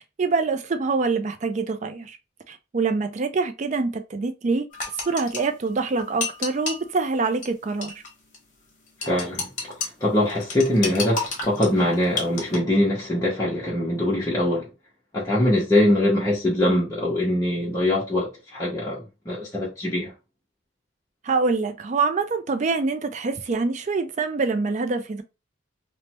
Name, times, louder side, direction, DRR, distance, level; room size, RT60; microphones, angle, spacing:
voice 1, 0.2-2.2 2.5-4.7 5.1-7.9 21.2-25.2, right 4 dB, 35° right, 0.3 m, -25 dB
sound 1, 4.7-6.9 7.4-7.5 7.8-8.1 8.3-8.4 9.0-9.9 10.3-12.6, left 4 dB, 35° left, 1.0 m, -30 dB
voice 2, 9.0-9.5 9.8-14.7 15.1-20.1, left 1 dB, 15° left, 0.7 m, -23 dB
3.2 x 2.1 x 2.9 m
head